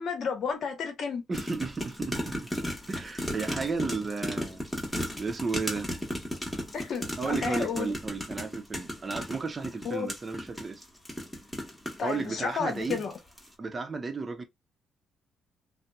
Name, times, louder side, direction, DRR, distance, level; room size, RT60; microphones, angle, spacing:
voice 1, 0.0-1.2 6.7-7.9 9.8-10.1 12.0-13.1, left 5 dB, 65° left, 0.9 m, -32 dB
sound 1, 1.3-12.1 12.7-13.1 13.4-13.5, left 1 dB, 5° left, 1.0 m, -35 dB
voice 2, 1.3-2.5 2.9-4.6 5.2-5.9 7.2-10.8 12.0-13.0 13.6-14.4, right 4 dB, 30° right, 0.6 m, -33 dB
2.8 x 2.0 x 2.3 m
cardioid pair, 90°, 0 cm